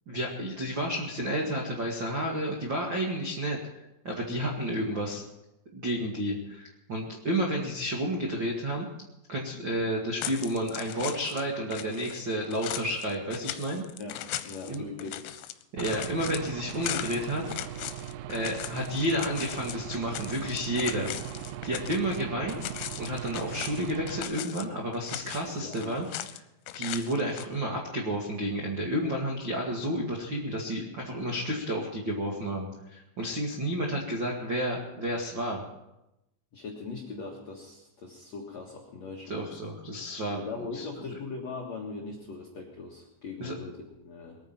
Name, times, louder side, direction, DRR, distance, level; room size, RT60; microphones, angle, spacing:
voice 1, 0.1-3.6 4.0-5.2 5.7-8.9 9.3-13.8 14.7-14.9 15.7-17.4 18.3-21.1 21.6-22.7 23.0-26.4 26.7-35.6 39.3-40.4 40.7-41.2 43.4-43.5, equal, 65° right, -1 dB, 1.1 m, -31 dB
sound 1, 10.2-11.5 11.7-22.2 22.5-24.7 24.9-26.4 26.7-27.4, left 14 dB, 85° left, 3.2 m, -39 dB
voice 2, 14.0-15.4 25.4-26.0 36.5-39.6 40.3-44.4, left 4 dB, 65° left, -2 dB, 1.7 m, -40 dB
Aircraft / Engine, 15.8-24.2, right 11 dB, 80° right, 3.1 m, -39 dB
21.5 x 9.4 x 5.9 m, 0.90 s
omnidirectional pair, 5.7 m